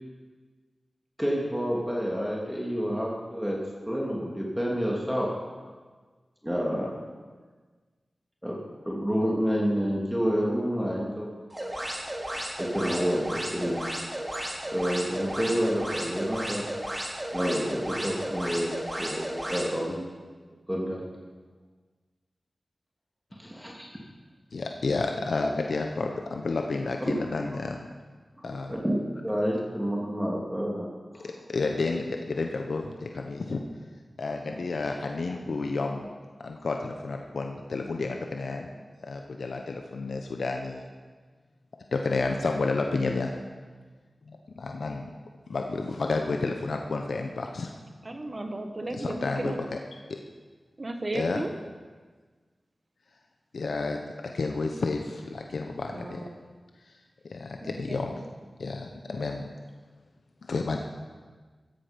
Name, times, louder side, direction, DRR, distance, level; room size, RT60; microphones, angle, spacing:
voice 1, 1.2-3.6 3.9-5.3 6.4-6.9 8.4-8.6 8.9-11.3 12.6-13.9 14.7-16.7 17.3-18.7 19.0-20.0 20.7-21.0 23.3-23.9 28.4-30.9 31.1-31.3, equal, 5° right, -3 dB, 2.8 m, -29 dB
sound 1, 11.5-19.7, right 1 dB, 25° right, 3.3 m, -34 dB
voice 2, 24.5-27.9 28.4-28.8 31.2-33.6 34.2-36.1 36.4-38.7 39.0-40.9 41.9-43.3 44.3-45.1 45.5-47.7 49.0-49.8 50.1-50.2 51.1-51.4 53.5-56.3 57.2-58.2 58.6-59.5 60.4-60.8, left 3 dB, 85° left, 3 dB, 1.0 m, -31 dB
voice 3, 48.0-49.6 50.8-51.5 55.9-56.4 57.6-58.0, right 2 dB, 40° right, 5 dB, 1.7 m, -34 dB
15.5 x 14.5 x 5.3 m, 1.4 s
wide cardioid pair, 60°, 0 cm